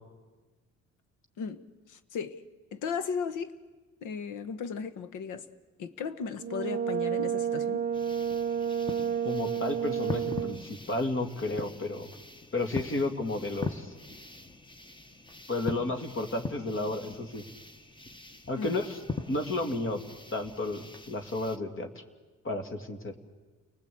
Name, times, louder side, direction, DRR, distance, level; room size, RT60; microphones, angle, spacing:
voice 1, 1.4-2.4 2.7-3.5 4.0-5.4 5.8-7.9 18.6-18.8, left 6 dB, 85° left, 1.3 m, -36 dB
Brass instrument, 6.4-10.8, right 8 dB, 30° right, 0.8 m, -30 dB
sound 1, 7.9-21.6, left 3 dB, 15° left, 1.3 m, -42 dB
voice 2, 9.2-12.1 12.5-13.9 15.5-17.4 18.5-19.0 19.3-20.0 20.3-21.9 22.4-23.2, left 2 dB, 45° left, 2.5 m, -32 dB
30.0 x 19.5 x 8.6 m
cardioid pair, 90°, 30 cm